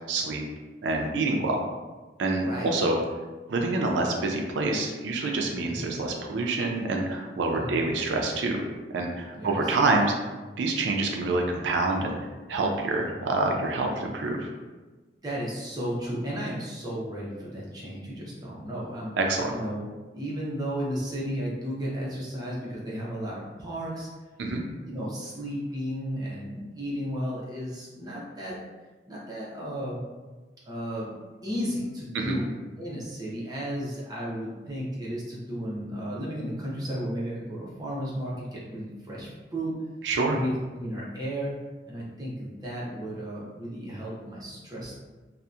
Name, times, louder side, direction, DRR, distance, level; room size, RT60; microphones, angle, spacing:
voice 1, 0.1-0.4 0.8-1.6 2.2-3.0 3.5-8.6 8.9-10.1 10.6-12.1 12.5-14.5 19.2-19.5 24.4-24.6 32.1-32.4 40.0-40.4, right 3 dB, 85° right, 1 dB, 0.4 m, -26 dB
voice 2, 9.3-9.7 15.2-19.2 19.5-19.8 20.1-24.1 24.5-28.6 29.1-30.0 30.7-31.1 31.4-39.7 40.3-41.6 41.9-45.0, equal, 20° right, -6 dB, 0.5 m, -34 dB
2.6 x 2.1 x 2.3 m, 1.3 s
head